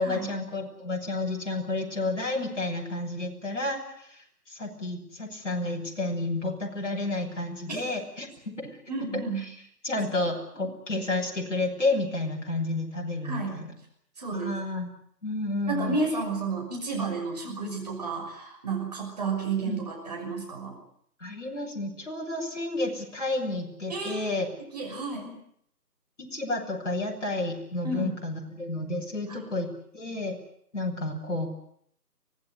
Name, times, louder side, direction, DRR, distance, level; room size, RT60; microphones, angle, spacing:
voice 1, 0.0-8.7 9.4-9.5 9.8-13.7 14.3-14.9 15.2-16.0 19.6-19.8 21.2-24.5 26.2-30.4 30.7-31.5, left 2 dB, 45° left, 0 dB, 6.8 m, -31 dB
voice 2, 8.9-9.4 10.6-10.7 13.2-13.6 14.2-14.5 15.7-20.7 23.9-24.4 24.7-25.3 27.8-28.1 29.3-29.4, right 3 dB, 25° right, 0 dB, 6.1 m, -31 dB
24.5 x 19.0 x 9.7 m, 0.68 s
figure-of-eight pair, 165°, 49 cm